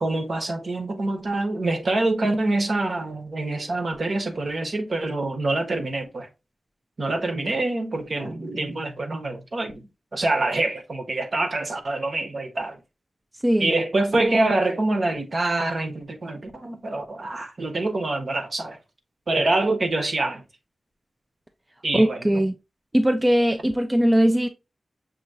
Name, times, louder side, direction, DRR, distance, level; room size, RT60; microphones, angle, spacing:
voice 1, 0.0-6.3 7.0-12.8 13.6-18.8 19.3-20.4 21.8-22.4, right 2 dB, 50° right, 1.0 m, -25 dB
voice 2, 21.9-22.5 22.9-24.5, equal, 15° right, 0.4 m, -20 dB
6.4 x 2.8 x 2.7 m
wide cardioid pair, 110°, 0 cm